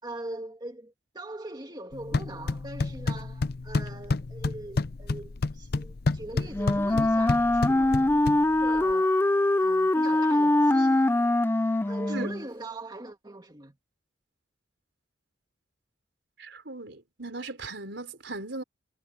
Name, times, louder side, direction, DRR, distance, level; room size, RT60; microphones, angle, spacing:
voice 1, 0.0-9.2 9.6-11.1 11.9-13.8, right 1 dB, 20° right, 2.3 m, -41 dB
sound 1, 1.9-8.9, left 3 dB, 55° left, 0.6 m, -30 dB
Wind instrument woodwind instrument, 6.5-12.4, left 2 dB, 10° left, 0.4 m, -23 dB
voice 2, 16.4-18.6, right 2 dB, 65° right, 4.4 m, -38 dB
head